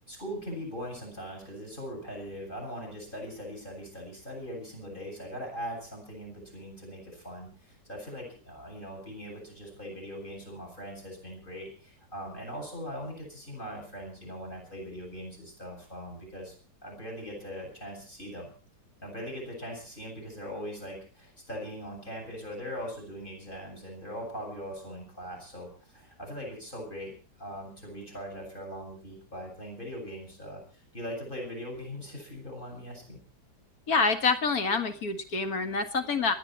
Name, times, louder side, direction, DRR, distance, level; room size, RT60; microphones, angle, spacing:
voice 1, 0.1-16.5 16.8-18.5 19.0-33.2, equal, 30° left, 2 dB, 8.2 m, -40 dB
voice 2, 33.9-36.3, left 4 dB, 60° left, 7 dB, 2.2 m, -27 dB
28.0 x 10.0 x 4.6 m, 0.38 s
omnidirectional pair, 1.8 m